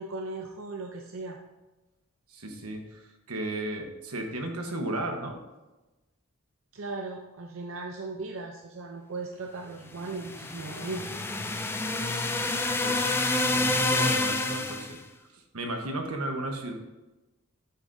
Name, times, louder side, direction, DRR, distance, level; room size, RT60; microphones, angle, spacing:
voice 1, 0.0-1.4 6.7-11.1, right 3 dB, 65° right, 1 dB, 0.6 m, -37 dB
voice 2, 2.3-5.4 12.1-15.0 15.3-16.7, right 1 dB, 80° right, 4 dB, 1.2 m, -35 dB
sound 1, 10.0-15.0, left 2 dB, 10° left, 0.3 m, -28 dB
8.4 x 8.1 x 2.7 m, 1.1 s
head